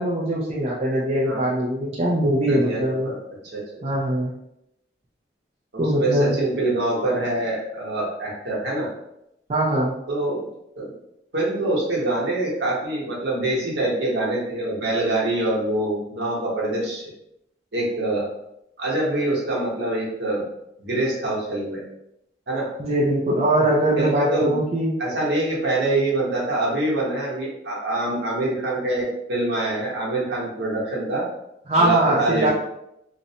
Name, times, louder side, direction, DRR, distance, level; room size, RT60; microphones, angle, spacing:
voice 1, 0.0-3.1 3.8-4.3 5.8-6.4 9.5-9.9 22.8-24.9 31.7-32.5, right 1 dB, 35° right, -5 dB, 0.4 m, -21 dB
voice 2, 2.5-3.2 3.5-3.8 5.7-8.9 10.1-10.4 10.7-10.9 11.3-17.0 17.7-18.2 18.8-20.4 20.8-21.8 22.5-22.7 23.6-24.5 25.0-31.2 31.8-32.5, right 2 dB, 70° right, -5 dB, 0.9 m, -25 dB
2.5 x 2.0 x 2.7 m, 0.81 s
head